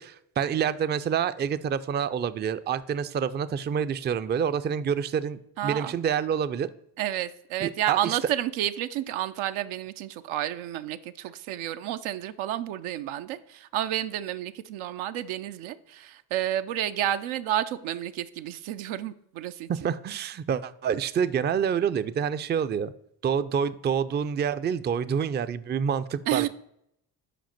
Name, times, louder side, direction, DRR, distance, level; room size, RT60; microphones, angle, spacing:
voice 1, 0.0-6.7 7.6-8.2 19.7-22.9 23.2-26.5, right 7 dB, 25° right, 14 dB, 0.3 m, -27 dB
voice 2, 5.6-5.9 7.0-19.9 26.3-26.5, right 12 dB, 85° right, 11 dB, 0.5 m, -30 dB
5.2 x 5.1 x 5.8 m, 0.75 s
supercardioid pair, 60°, 47 cm